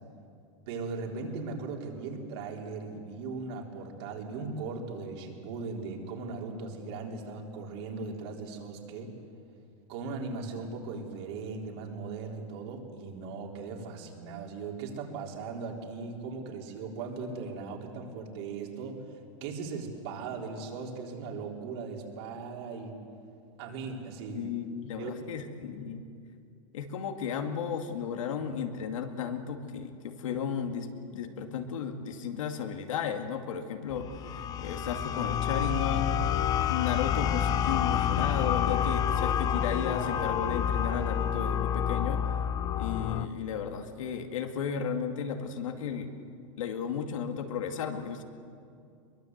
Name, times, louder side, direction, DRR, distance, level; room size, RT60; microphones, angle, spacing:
voice 1, 0.7-9.1 9.9-23.0 23.6-24.5 25.0-25.1 25.4-25.5, right 4 dB, 55° right, 1 dB, 3.9 m, -38 dB
voice 2, 24.3-26.1 26.7-34.1 34.3-36.2 36.7-42.2 42.8-46.1 46.6-48.2, left 7 dB, 85° left, 5 dB, 2.2 m, -34 dB
sound 1, 33.9-43.3, left 9 dB, 25° left, 0.7 m, -28 dB
22.5 x 22.0 x 8.1 m, 2.5 s
supercardioid pair, 155°, 16 cm